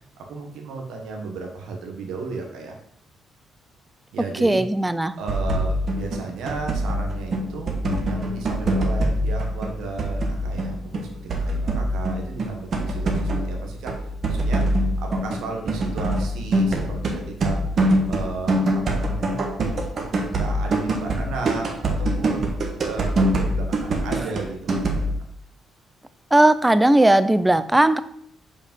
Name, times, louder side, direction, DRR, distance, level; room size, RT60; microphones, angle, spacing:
voice 1, 0.2-2.8 4.1-4.6 5.2-7.8 8.0-17.6 18.1-19.4 20.0-25.2, right 3 dB, 80° right, 2 dB, 1.2 m, -34 dB
voice 2, 4.4-5.1 26.3-28.0, right 1 dB, 10° right, 14 dB, 0.4 m, -17 dB
sound 1, 5.3-25.1, right 1 dB, 50° right, 1.2 m, -24 dB
5.3 x 5.0 x 5.3 m, 0.68 s
cardioid pair, 90°, 0 cm